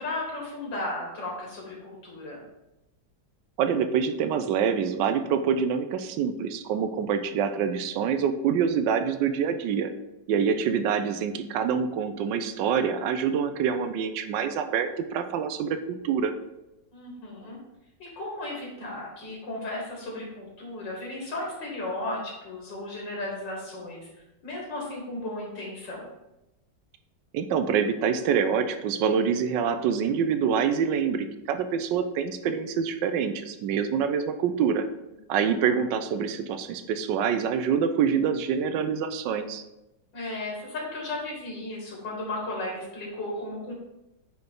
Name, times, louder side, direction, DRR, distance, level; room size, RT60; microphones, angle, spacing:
voice 1, 0.0-2.4 16.9-17.6 18.0-24.1 24.4-26.1 35.6-35.8 40.1-43.7, left 2 dB, 75° left, -2 dB, 2.3 m, -35 dB
voice 2, 3.6-9.9 10.3-16.3 27.3-34.9 35.3-39.6, right 7 dB, 80° right, 9 dB, 1.3 m, -26 dB
8.8 x 3.8 x 3.7 m, 0.93 s
omnidirectional pair, 2.0 m